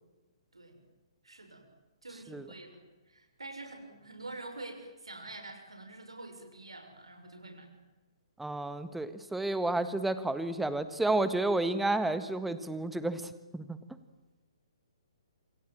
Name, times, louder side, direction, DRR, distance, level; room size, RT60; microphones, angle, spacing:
voice 1, 0.5-0.8 1.2-1.6 2.0-2.8 3.1-7.7, right 2 dB, 75° right, 4 dB, 6.4 m, -46 dB
voice 2, 8.4-13.8, right 2 dB, 5° right, 12 dB, 1.5 m, -31 dB
27.5 x 27.5 x 7.5 m, 1.1 s
figure-of-eight pair, 125°, 3 cm